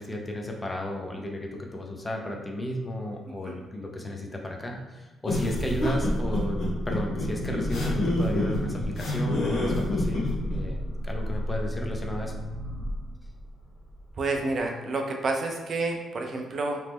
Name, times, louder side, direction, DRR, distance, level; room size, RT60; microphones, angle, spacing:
voice 1, 0.0-6.6 6.8-12.4, left 1 dB, 20° left, 1 dB, 0.5 m, -33 dB
sound 1, 5.2-10.6, left 1 dB, 80° left, 0.9 m, -28 dB
sound 2, 5.5-14.6, equal, 40° left, 1.2 m, -34 dB
voice 2, 14.2-16.8, right 3 dB, 50° right, 2 dB, 0.4 m, -29 dB
3.0 x 2.0 x 3.4 m, 1.2 s
cardioid pair, 90°, 0 cm